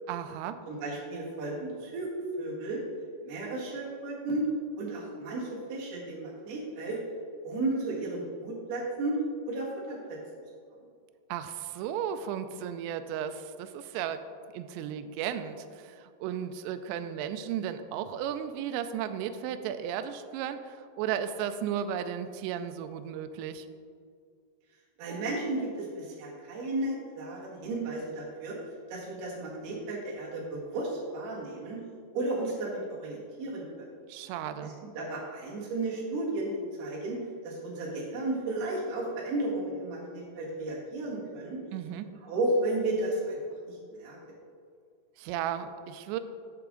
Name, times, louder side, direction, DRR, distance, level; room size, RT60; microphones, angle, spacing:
voice 1, 0.1-0.6 11.3-14.2 14.5-23.7 34.1-34.8 41.7-42.1 45.2-46.2, right 9 dB, 90° right, 9 dB, 2.5 m, -34 dB
voice 2, 0.7-2.1 2.4-2.8 3.2-4.4 4.8-7.0 7.4-9.2 9.5-10.2 25.0-28.6 28.9-31.8 32.1-33.9 34.6-37.2 37.4-41.6 42.2-43.4 43.7-44.2, right 2 dB, 60° right, -4 dB, 3.5 m, -33 dB
10.5 x 7.0 x 3.8 m, 2.2 s
omnidirectional pair, 5.5 m